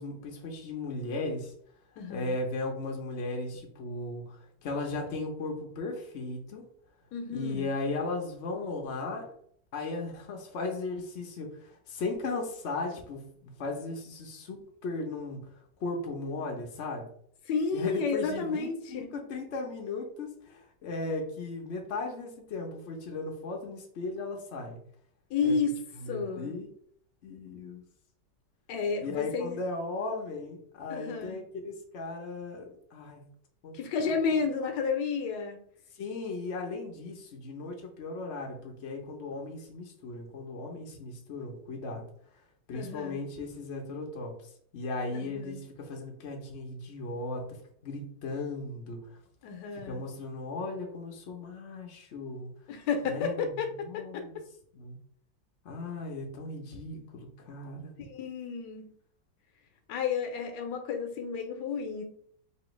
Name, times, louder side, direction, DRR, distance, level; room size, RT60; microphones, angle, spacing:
voice 1, 0.0-1.5 2.1-6.6 7.3-9.3 9.7-17.1 17.7-24.8 25.4-25.6 26.0-26.7 27.2-27.8 29.0-33.2 33.6-33.8 34.0-34.2 35.9-42.0 42.7-47.6 47.8-49.2 49.8-52.5 53.0-54.4 54.7-55.0 55.6-57.9, left 3 dB, 60° left, 1 dB, 0.7 m, -37 dB
voice 2, 2.0-2.4 7.1-7.7 17.5-19.1 25.3-25.7 26.1-26.5 28.7-29.6 30.9-31.4 33.7-35.6 42.7-43.2 45.1-45.6 49.4-50.0 52.7-54.2 58.0-58.9 59.9-62.0, left 5 dB, 75° left, 4 dB, 1.2 m, -31 dB
4.2 x 2.8 x 3.0 m, 0.63 s
omnidirectional pair, 1.9 m